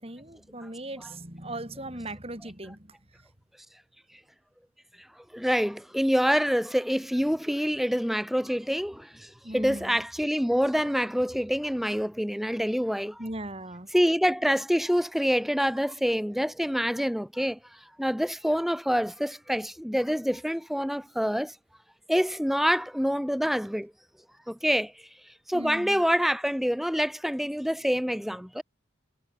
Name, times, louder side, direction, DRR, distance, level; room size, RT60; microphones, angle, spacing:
voice 1, 0.0-3.0 9.4-10.0 13.2-13.9 25.5-26.0, right 1 dB, 30° right, 4.7 m, -38 dB
voice 2, 5.3-13.2 13.9-17.6 18.0-21.5 22.1-23.9 24.5-24.9 25.5-28.6, equal, ahead, 2.9 m, -26 dB
head